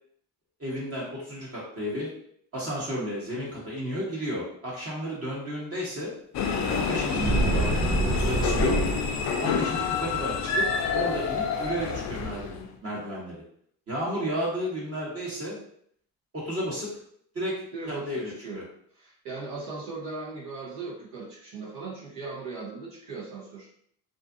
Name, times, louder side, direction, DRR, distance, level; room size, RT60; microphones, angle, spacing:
voice 1, 0.6-2.1 2.5-6.1 6.7-7.7 8.3-8.8 9.4-13.4 13.9-15.6 16.3-16.9 17.3-17.5 17.9-18.6, equal, 35° right, -5 dB, 1.0 m, -33 dB
sound 1, 6.3-12.7, left 5 dB, 40° left, 0.4 m, -28 dB
sound 2, 7.1-9.3, right 2 dB, 15° right, 0.4 m, -26 dB
voice 2, 17.7-18.6 18.9-23.7, right 3 dB, 75° right, -6 dB, 0.9 m, -38 dB
2.5 x 2.4 x 2.5 m, 0.64 s
supercardioid pair, 80°, 43 cm